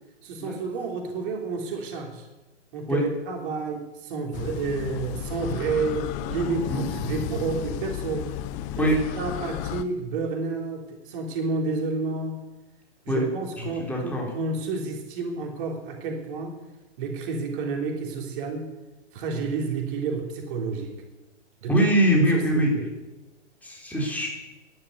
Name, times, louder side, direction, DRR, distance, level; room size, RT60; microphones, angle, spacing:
voice 1, 0.2-2.3 2.7-8.3 8.7-12.4 13.0-16.6 17.0-18.7 19.1-21.0 21.6-21.9 22.3-22.9, right 4 dB, 45° right, 1 dB, 3.2 m, -30 dB
sound 1, 4.3-9.8, left 12 dB, 20° left, 0.4 m, -33 dB
voice 2, 13.6-14.3 21.7-22.7 23.6-24.3, right 1 dB, 5° left, -2 dB, 4.2 m, -23 dB
11.5 x 11.0 x 8.1 m, 1.1 s
hypercardioid pair, 120°, 36 cm